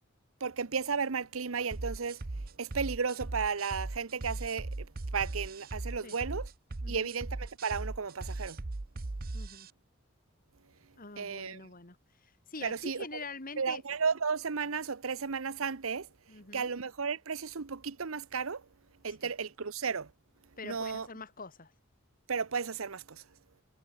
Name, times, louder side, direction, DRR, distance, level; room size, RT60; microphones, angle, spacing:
voice 1, 0.4-6.5 6.9-8.6 11.2-11.7 12.6-13.2 13.6-16.1 16.5-18.7 19.0-20.1 20.6-21.1 22.3-23.2, right 5 dB, 85° right, 0.9 m, -34 dB
sound 1, 1.7-9.7, right 2 dB, 45° right, 0.9 m, -39 dB
voice 2, 9.3-9.7 11.0-12.0 12.2-13.8 16.3-16.7 19.2-19.3 20.6-21.7, left 3 dB, 45° left, 2.8 m, -45 dB
head